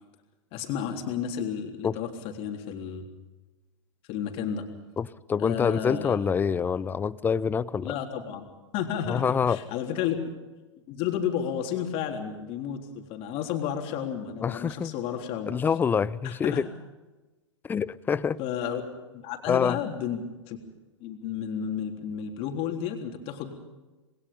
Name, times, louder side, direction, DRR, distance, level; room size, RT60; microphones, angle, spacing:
voice 1, 0.5-2.1 2.4-3.1 4.1-4.6 5.4-6.2 7.8-8.5 8.7-10.2 10.9-15.5 16.2-16.6 18.4-18.9 19.1-20.6 21.0-23.5, left 9 dB, 35° left, 3 dB, 3.7 m, -32 dB
voice 2, 5.0-7.9 9.1-9.6 14.4-14.9 15.5-16.7 17.6-18.4 19.5-19.8, left 6 dB, 10° left, 19 dB, 0.6 m, -26 dB
27.0 x 21.5 x 5.4 m, 1.2 s
figure-of-eight pair, 105°, 16 cm